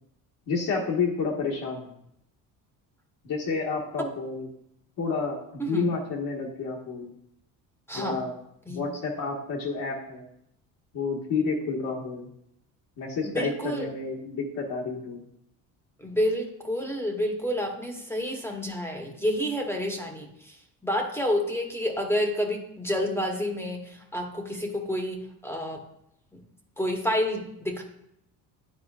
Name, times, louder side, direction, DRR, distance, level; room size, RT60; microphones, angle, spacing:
voice 1, 0.5-1.9 3.2-4.5 5.0-5.4 5.7-7.1 7.9-8.3 8.7-10.3 10.9-12.3 13.0-15.2, left 4 dB, 70° left, -3 dB, 1.4 m, -30 dB
voice 2, 5.6-5.9 7.9-8.2 8.7-8.8 13.2-13.9 16.0-25.8 26.3-26.4 26.8-27.8, equal, 5° left, 2 dB, 1.0 m, -29 dB
10.0 x 4.5 x 2.4 m, 0.77 s
cardioid pair, 95°, 35 cm